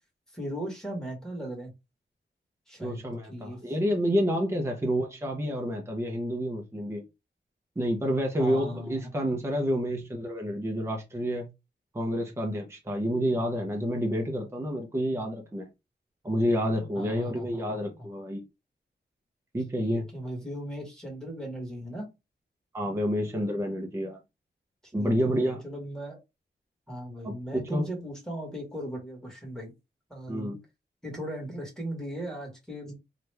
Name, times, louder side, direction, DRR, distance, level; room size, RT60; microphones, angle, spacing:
voice 1, 0.3-1.7 2.7-3.0 3.3-3.6 8.4-9.1 16.9-18.1 19.7-22.0 24.8-26.2 26.9-29.7 30.1-30.6 31.0-33.0, equal, 5° left, 1.5 m, -38 dB
voice 2, 2.8-7.0 7.8-11.5 11.9-15.7 16.2-18.4 19.5-20.1 22.7-24.2 24.9-25.6 27.2-27.9 30.3-30.6, equal, 15° right, 0.7 m, -29 dB
2.9 x 2.4 x 3.3 m
wide cardioid pair, 130°, 19 cm